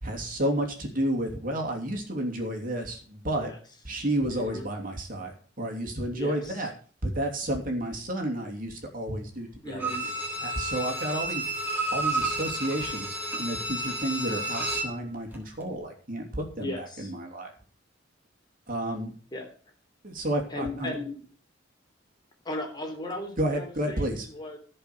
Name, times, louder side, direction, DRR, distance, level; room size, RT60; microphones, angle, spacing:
voice 1, 0.0-3.5 3.8-6.7 7.0-9.9 10.4-11.5 11.9-17.5 18.7-19.1 20.0-20.9 23.4-24.3, right 1 dB, 45° right, 2 dB, 3.1 m, -31 dB
voice 2, 4.3-4.6 6.1-6.7 9.6-10.1 16.6-17.1 19.3-19.5 20.5-21.2 22.5-24.6, left 1 dB, 20° left, 2 dB, 3.4 m, -37 dB
Bowed string instrument, 9.8-15.0 15.3-15.4, right 2 dB, 10° right, 3.4 m, -31 dB
16.5 x 5.6 x 6.9 m, 0.41 s
head